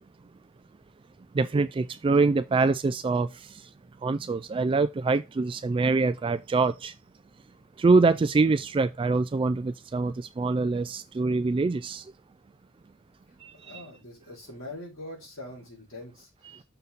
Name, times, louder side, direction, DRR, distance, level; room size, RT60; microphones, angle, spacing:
voice 1, 1.3-3.7 4.0-6.9 7.8-12.1 13.4-13.8 16.5-16.6, right 3 dB, 25° right, 0.3 m, -25 dB
voice 2, 13.3-16.6, left 1 dB, 70° left, 4.4 m, -43 dB
6.6 x 4.5 x 5.2 m
head